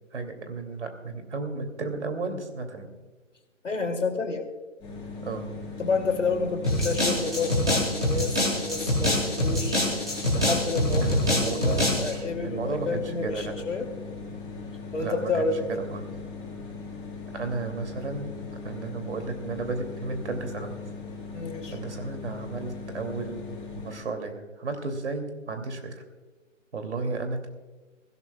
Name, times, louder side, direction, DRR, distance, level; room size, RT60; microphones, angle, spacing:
voice 1, 0.1-2.9 5.2-5.5 11.0-13.5 15.0-16.0 17.3-18.3 18.6-20.8 21.7-23.5 23.8-26.0 26.7-27.5, right 3 dB, 60° right, 6 dB, 2.7 m, -33 dB
voice 2, 3.6-4.5 5.8-9.8 10.3-13.9 14.9-15.6 21.3-21.8, left 4 dB, 70° left, 4 dB, 2.6 m, -30 dB
sound 1, 4.8-24.1, left 4 dB, 10° left, 3.9 m, -39 dB
sound 2, 6.6-12.1, left 1 dB, 5° right, 0.6 m, -25 dB
23.5 x 16.5 x 2.3 m, 1.2 s
figure-of-eight pair, 155°, 39 cm